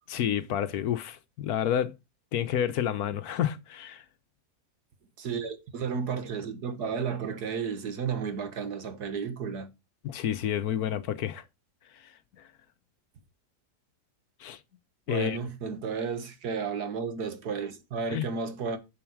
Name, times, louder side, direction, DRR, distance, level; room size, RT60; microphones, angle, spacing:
voice 1, 0.1-1.9 2.3-4.0 10.0-11.4 14.4-14.6 15.1-15.4 18.1-18.2, left 10 dB, 70° left, 1.2 m, -29 dB
voice 2, 5.2-9.7 15.1-18.8, right 6 dB, 70° right, 1.9 m, -33 dB
7.3 x 7.0 x 4.5 m
omnidirectional pair, 1.7 m